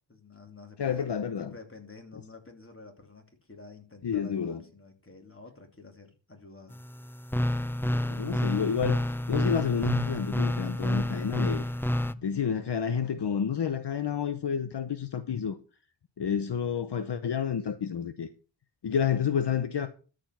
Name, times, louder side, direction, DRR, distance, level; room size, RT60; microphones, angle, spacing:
voice 1, 0.1-1.1 1.4-6.8, left 3 dB, 30° left, 2.7 m, -50 dB
voice 2, 0.8-1.5 4.0-4.6 7.9-9.0 9.3-11.6 12.2-15.6 16.2-18.3 18.8-19.9, left 7 dB, 65° left, 0.8 m, -29 dB
sound 1, 6.7-12.1, left 1 dB, 5° left, 0.5 m, -29 dB
13.0 x 5.1 x 5.9 m
wide cardioid pair, 75°, 45 cm